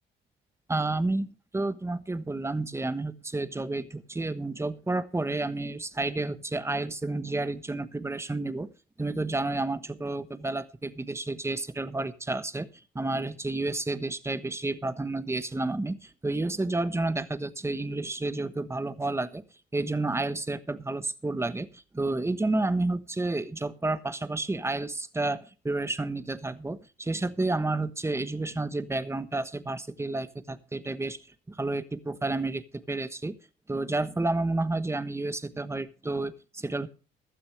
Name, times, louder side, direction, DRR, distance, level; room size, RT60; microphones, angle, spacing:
voice 1, 0.7-1.3 1.5-8.7 9.0-12.7 12.9-19.4 19.7-31.2 31.5-33.4 33.7-36.9, right 2 dB, 15° right, 12 dB, 1.2 m, -30 dB
16.0 x 12.5 x 3.3 m, 0.34 s
cardioid pair, 90°, 20 cm